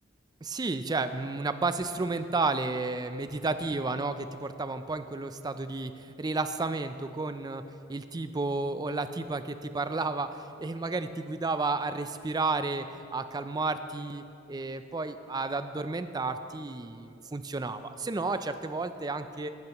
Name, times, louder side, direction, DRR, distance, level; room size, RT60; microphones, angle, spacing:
voice 1, 0.4-7.6 7.9-19.5, right 3 dB, 20° right, 10 dB, 0.4 m, -32 dB
19.5 x 9.0 x 3.0 m, 2.7 s
head